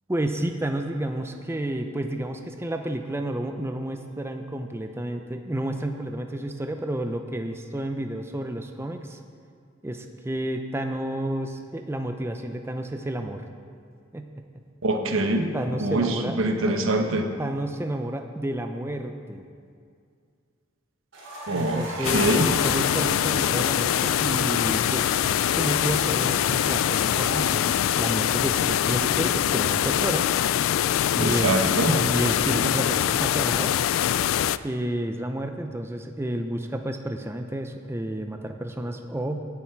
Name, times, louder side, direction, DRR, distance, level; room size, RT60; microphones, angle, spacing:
voice 1, 0.1-9.2 9.8-13.4 14.1-14.3 15.5-16.4 16.7-16.8 17.4-19.5 21.5-25.1 25.5-30.3 31.1-33.8 34.6-39.4, right 1 dB, 10° right, 5 dB, 0.6 m, -30 dB
voice 2, 14.8-15.4 15.8-17.3 21.5-22.4 31.2-31.9, right 2 dB, 90° right, 4 dB, 1.2 m, -24 dB
sound 1, 21.1-30.9, right 1 dB, 65° right, 3.6 m, -40 dB
sound 2, 22.0-34.6, left 10 dB, 80° left, 0.3 m, -23 dB
17.0 x 7.4 x 4.6 m, 2.3 s
head